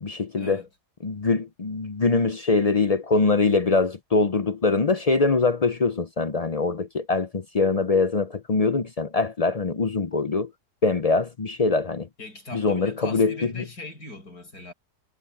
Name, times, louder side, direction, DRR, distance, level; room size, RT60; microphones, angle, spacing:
voice 1, 0.0-0.6 1.0-10.5 10.8-12.1 12.5-13.6, left 3 dB, 55° left, 0.4 m, -23 dB
voice 2, 12.2-14.7, left 2 dB, 70° left, 7.5 m, -40 dB
omnidirectional pair, 1.7 m